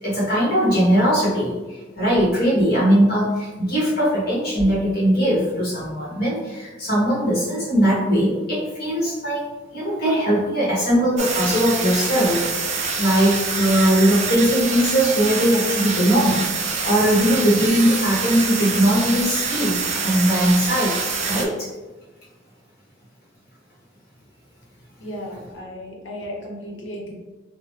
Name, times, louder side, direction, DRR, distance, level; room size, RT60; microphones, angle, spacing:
voice 1, 0.0-9.4 9.7-12.4 13.0-16.4 16.8-20.9 21.3-21.7, equal, 50° left, -8 dB, 1.3 m, -20 dB
sound 1, 11.2-21.4, right 5 dB, 35° right, 0.4 m, -26 dB
voice 2, 25.0-27.1, equal, 85° left, -1 dB, 0.8 m, -34 dB
3.0 x 2.1 x 3.2 m, 1.2 s
head